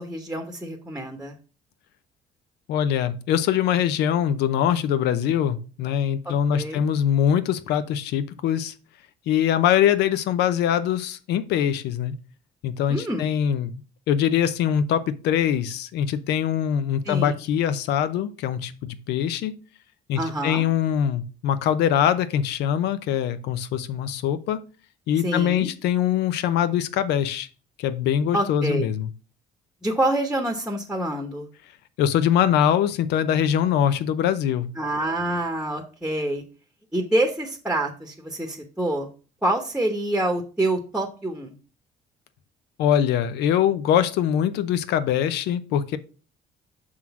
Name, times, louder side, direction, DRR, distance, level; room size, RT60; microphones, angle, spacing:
voice 1, 0.0-1.4 6.2-6.8 12.9-13.3 17.0-17.3 20.2-20.7 25.2-25.7 28.3-28.8 29.8-31.5 34.8-36.4 36.9-39.1 39.4-41.5, right 1 dB, 5° right, 4 dB, 1.0 m, -26 dB
voice 2, 2.7-8.7 9.3-12.1 12.6-13.8 14.1-19.5 20.1-24.6 25.1-27.5 27.8-29.1 32.0-34.7 42.8-46.0, left 9 dB, 80° left, 13 dB, 0.7 m, -23 dB
6.2 x 3.8 x 5.9 m, 0.36 s
cardioid pair, 110°, 17 cm